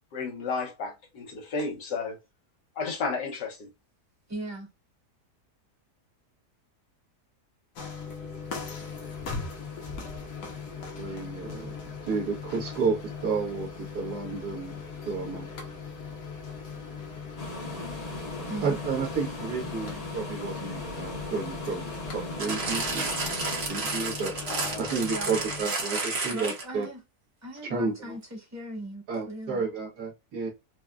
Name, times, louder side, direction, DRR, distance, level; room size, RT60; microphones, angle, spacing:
voice 1, 0.1-2.2 2.8-3.7 17.7-17.9 24.5-24.9, left 4 dB, 85° left, 1.7 m, -33 dB
voice 2, 4.3-4.7 18.5-18.8 25.1-25.4 26.3-27.0 27.4-29.6, right 1 dB, 10° right, 0.9 m, -38 dB
sound 1, 7.7-25.6, left 5 dB, 70° left, 1.4 m, -40 dB
voice 3, 11.0-11.7 12.0-13.7 13.9-15.5 18.6-23.1 23.4-24.3 24.8-26.9 27.6-28.2 29.1-30.5, right 4 dB, 75° right, 1.7 m, -31 dB
sound 2, 17.4-23.7, left 1 dB, 35° left, 0.6 m, -38 dB
sound 3, 22.4-26.8 27.6-27.7, right 3 dB, 45° right, 1.0 m, -31 dB
4.8 x 2.2 x 2.3 m
omnidirectional pair, 1.7 m